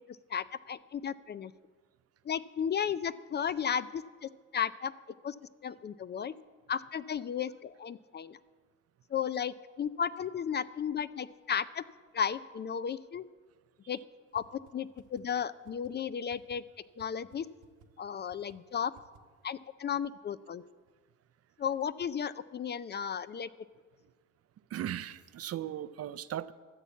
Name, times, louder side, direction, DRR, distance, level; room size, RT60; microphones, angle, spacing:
voice 1, 0.1-1.5 2.3-4.9 5.2-5.4 5.6-6.3 6.7-8.4 9.1-11.8 12.1-13.2 13.9-14.0 14.3-16.6 17.0-17.5 18.0-18.9 19.4-20.6 21.6-23.5, left 7 dB, 35° left, 16 dB, 0.4 m, -34 dB
sound 1, 14.4-14.5 14.7-14.8 15.0-15.2 15.7-15.9 16.3-16.6 17.0-17.1 17.3-17.4 17.6-17.9 18.3-18.6 19.0-19.2, right 8 dB, 70° right, 1.1 m, -57 dB
voice 2, 24.7-26.5, right 11 dB, 55° right, 15 dB, 0.5 m, -37 dB
13.0 x 7.1 x 8.1 m, 1.5 s
cardioid pair, 90°, 30 cm